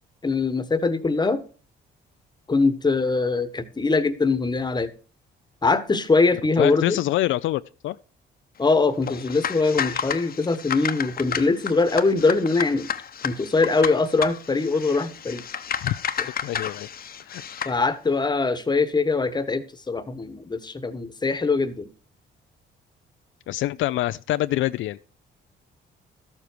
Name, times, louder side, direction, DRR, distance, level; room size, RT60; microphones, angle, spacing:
voice 1, 0.2-1.4 2.5-4.9 5.6-7.0 8.6-12.9 13.2-15.4 17.6-21.9, left 3 dB, 20° left, 1.2 m, -22 dB
voice 2, 6.6-8.0 15.8-16.0 16.4-16.9 17.3-17.4 23.5-25.0, left 15 dB, 75° left, 0.4 m, -25 dB
sound 1, 9.0-17.8, left 8 dB, 50° left, 0.9 m, -31 dB
13.0 x 7.1 x 4.5 m
cardioid pair, 90°, 20 cm